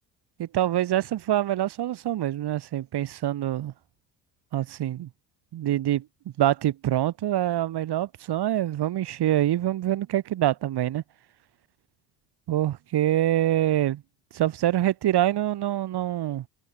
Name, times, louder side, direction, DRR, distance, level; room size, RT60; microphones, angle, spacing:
voice 1, 0.4-3.7 4.5-5.1 5.5-6.0 6.4-11.0 12.5-14.0 14.3-16.4, right 12 dB, 55° right, 6.7 m, -25 dB
hypercardioid pair, 60°, 47 cm